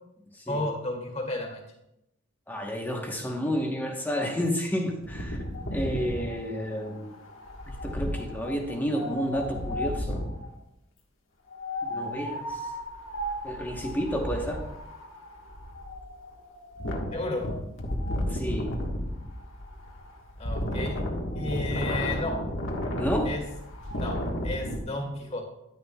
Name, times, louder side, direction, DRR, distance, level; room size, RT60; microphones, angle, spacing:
voice 1, 0.5-1.6 17.1-17.5 20.4-21.0 21.4-22.5 23.2-23.4 23.9-25.4, left 2 dB, 35° left, 2 dB, 1.9 m, -32 dB
voice 2, 2.5-5.4 5.7-7.1 7.7-10.2 11.9-12.6 13.4-14.6 18.3-18.7 23.0-23.3, equal, 10° left, 1 dB, 1.1 m, -30 dB
Wind, 5.0-10.5 11.5-24.8, left 1 dB, 75° left, 1.4 m, -33 dB
10.5 x 10.0 x 2.3 m, 0.87 s
head